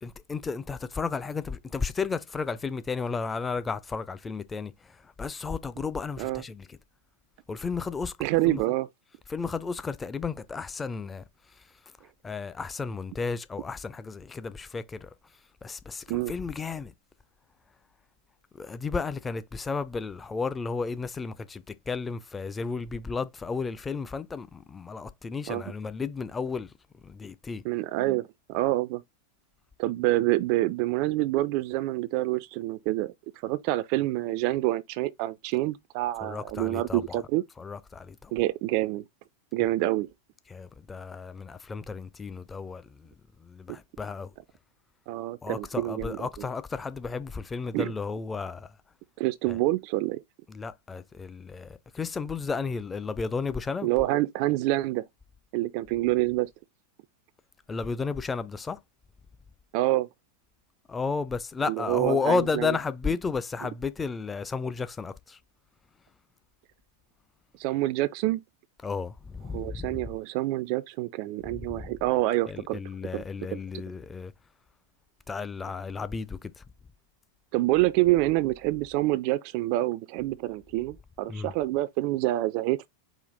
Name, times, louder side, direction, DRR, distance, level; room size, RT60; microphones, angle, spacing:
voice 1, 0.0-4.7 5.2-6.8 7.5-8.6 9.3-11.2 12.2-15.1 15.6-16.9 18.6-26.7 27.0-27.6 36.2-37.2 37.6-38.3 40.5-43.1 43.4-44.3 45.4-48.7 49.5-49.6 50.5-53.9 57.7-58.8 60.9-65.4 68.8-70.0 71.5-71.7 72.5-74.3 75.3-76.6 81.3-81.5, left 4 dB, 15° left, 0.5 m, -33 dB
voice 2, 8.2-8.9 16.1-16.3 25.5-25.6 27.6-29.0 29.8-33.1 33.4-37.4 38.3-39.0 39.5-40.1 45.1-46.3 47.7-47.9 49.2-50.2 53.8-55.0 55.5-56.5 59.7-60.1 61.7-62.8 67.6-68.4 69.5-72.8 73.1-73.2 73.5-73.6 77.5-82.9, right 17 dB, 45° right, 0.3 m, -27 dB
5.0 x 2.4 x 3.9 m
figure-of-eight pair, 90°, 0 cm